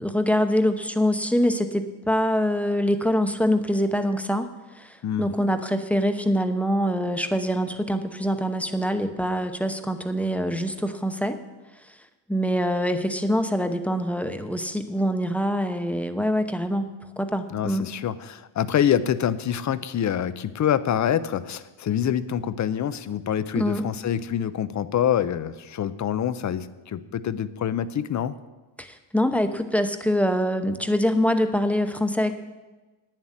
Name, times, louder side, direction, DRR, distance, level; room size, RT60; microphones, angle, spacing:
voice 1, 0.0-11.4 12.3-17.9 23.5-23.8 28.8-32.3, equal, 5° left, 7 dB, 0.8 m, -24 dB
voice 2, 17.5-28.4, left 9 dB, 40° left, 15 dB, 0.6 m, -26 dB
9.7 x 7.4 x 8.9 m, 1.2 s
cardioid pair, 110°, 45 cm